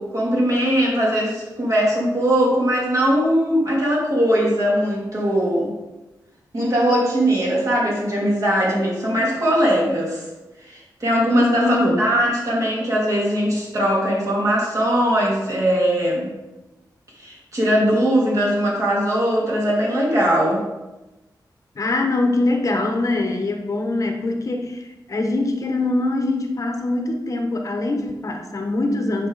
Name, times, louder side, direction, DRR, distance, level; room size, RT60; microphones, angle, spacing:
voice 1, 0.0-5.7 6.5-10.2 10.7-16.3 17.2-20.6, equal, 45° right, -4 dB, 2.7 m, -20 dB
voice 2, 11.6-12.0 21.8-29.3, left 2 dB, 45° left, 4 dB, 0.9 m, -23 dB
9.2 x 5.5 x 4.0 m, 1.1 s
wide cardioid pair, 145°, 8 cm